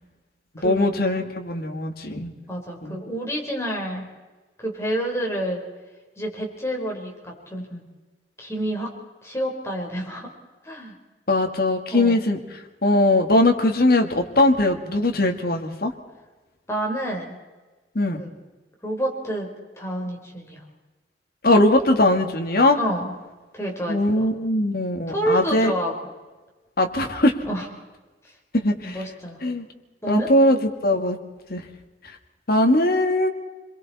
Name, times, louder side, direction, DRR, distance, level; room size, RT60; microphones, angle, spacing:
voice 1, 0.6-2.3 2.8-3.0 11.3-12.4 12.8-15.9 18.0-18.2 21.4-22.8 23.9-25.7 26.8-27.3 28.5-29.0 29.4-29.6 30.1-31.2 31.5-31.6 32.5-33.3, left 1 dB, 55° left, 3 dB, 2.2 m, -20 dB
voice 2, 2.5-4.1 4.6-5.6 6.2-7.8 8.4-8.9 9.2-10.3 10.6-10.9 11.9-12.2 16.7-17.4 18.1-18.3 18.8-19.5 19.8-20.6 22.7-23.1 23.5-24.3 25.1-26.0 27.4-27.7 28.8-29.4 30.0-30.3, right 1 dB, 15° left, 0 dB, 4.2 m, -28 dB
28.5 x 22.5 x 4.3 m, 1.2 s
head